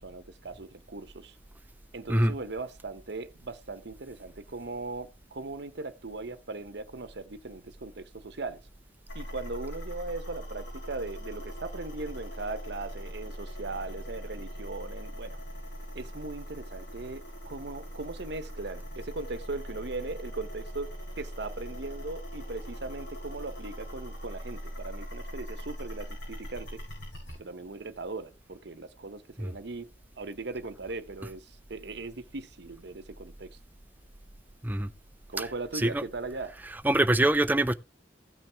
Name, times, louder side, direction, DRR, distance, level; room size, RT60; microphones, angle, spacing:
voice 1, 0.0-1.3 1.9-8.6 9.1-15.4 15.9-26.8 27.4-29.9 30.2-33.6 35.3-36.6, right 3 dB, 65° right, 0.9 m, -39 dB
sound 1, 9.1-27.4, equal, 80° left, 6.7 m, -41 dB
voice 2, 36.8-37.7, right 1 dB, 10° right, 0.5 m, -24 dB
16.0 x 5.9 x 3.4 m
head